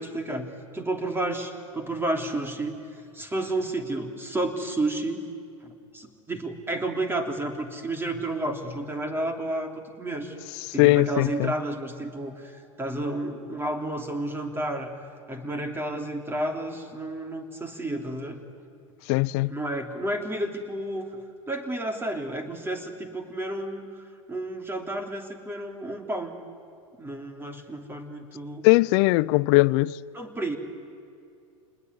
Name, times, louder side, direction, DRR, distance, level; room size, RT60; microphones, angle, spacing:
voice 1, 0.0-2.7 3.1-5.2 5.6-9.7 10.0-10.4 10.7-14.9 15.3-18.4 19.5-21.1 21.5-26.3 27.0-28.6 30.1-30.6, right 1 dB, 10° right, 3.2 m, -31 dB
voice 2, 10.8-11.5 19.1-19.5 28.6-30.0, left 22 dB, 50° left, 0.6 m, -20 dB
27.5 x 20.5 x 9.8 m
hypercardioid pair, 95°, 18 cm